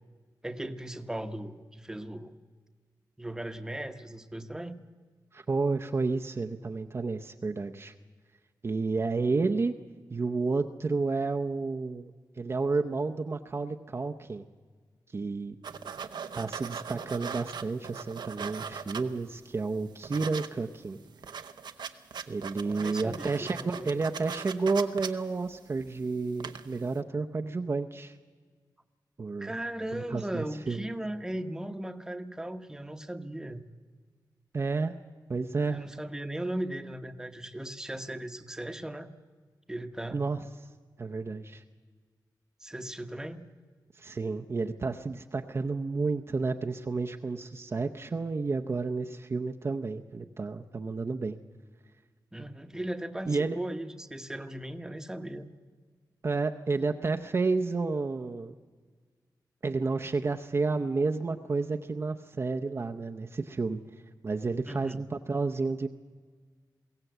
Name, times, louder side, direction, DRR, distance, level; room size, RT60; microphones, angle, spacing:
voice 1, 0.4-2.4 3.2-4.8 22.6-23.9 29.4-33.7 35.7-39.1 39.7-40.2 42.6-43.5 52.3-55.5 64.6-65.0, right 1 dB, 10° right, 8 dB, 1.0 m, -37 dB
voice 2, 5.3-7.9 8.6-9.7 10.1-12.1 12.4-14.4 15.1-15.6 16.3-21.0 22.3-28.2 29.2-29.6 29.9-30.8 34.5-34.9 35.3-35.8 40.1-40.4 41.0-41.6 44.0-51.4 53.3-53.6 56.2-58.5 59.6-63.8 64.2-65.9, right 4 dB, 35° right, 5 dB, 0.7 m, -31 dB
sound 1, 15.6-19.4 19.7-20.5 20.8-20.9 21.1-26.0 26.3-26.8, right 7 dB, 85° right, 0.9 m, -39 dB
22.0 x 17.0 x 8.0 m, 1.5 s
wide cardioid pair, 130°, 7 cm